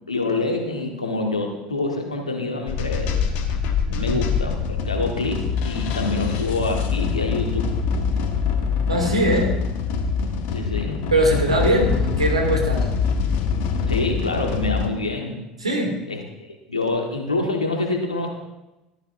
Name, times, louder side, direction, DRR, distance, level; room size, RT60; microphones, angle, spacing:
voice 1, 0.1-3.4 4.0-7.7 10.5-11.0 13.9-15.4 16.1-18.3, left 2 dB, 80° left, 3 dB, 1.4 m, -26 dB
sound 1, 2.7-14.9, left 6 dB, 50° left, 1.1 m, -24 dB
voice 2, 3.9-4.2 8.9-9.5 11.1-12.9 15.6-15.9, right 1 dB, 85° right, 0 dB, 2.4 m, -21 dB
13.5 x 13.5 x 2.6 m, 1.0 s
figure-of-eight pair, 70°, 3 cm